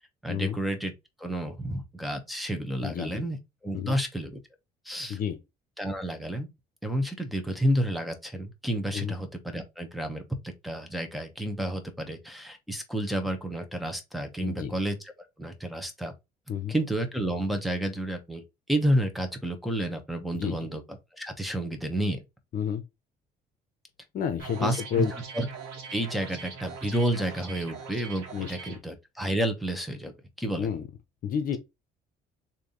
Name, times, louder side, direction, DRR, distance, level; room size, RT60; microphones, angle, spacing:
voice 1, 0.2-0.9 1.2-3.4 3.6-4.4 4.8-5.2 5.8-6.5 6.8-15.0 15.4-16.1 16.7-22.2 24.6-25.1 25.3-25.5 25.9-30.1 30.4-30.7, right 1 dB, ahead, 1.0 m, -30 dB
voice 2, 2.8-3.2 3.7-4.0 5.1-5.4 8.9-9.1 14.4-14.7 16.5-16.7 20.3-20.7 22.5-22.8 24.1-25.1 28.3-28.8 30.6-30.9 31.2-31.6, left 8 dB, 55° left, 0.8 m, -30 dB
sound 1, 24.4-28.8, right 5 dB, 90° right, 1.3 m, -42 dB
3.3 x 2.7 x 3.8 m
cardioid pair, 110°, 17 cm